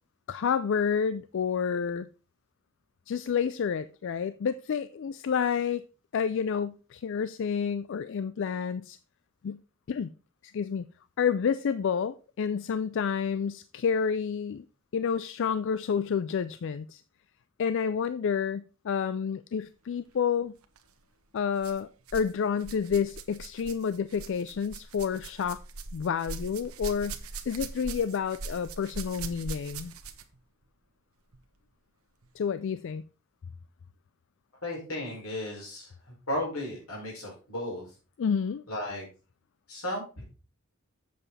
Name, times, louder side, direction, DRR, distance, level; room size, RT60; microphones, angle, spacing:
voice 1, 0.3-2.1 3.1-5.8 6.1-9.0 9.4-9.6 9.9-10.1 10.4-10.9 11.2-14.6 14.9-17.0 17.6-20.5 21.3-25.6 25.9-27.2 27.5-29.9 32.4-33.0 38.2-38.6, left 6 dB, 60° left, 0.4 m, -29 dB
sound 1, 20.6-20.8 21.6-22.3 22.6-30.4 31.3-31.4 32.2-32.3, right 3 dB, 90° right, 1.0 m, -41 dB
voice 2, 34.6-37.9 38.7-39.1 39.7-40.2, left 1 dB, 85° left, 5.2 m, -35 dB
7.8 x 7.0 x 4.1 m
head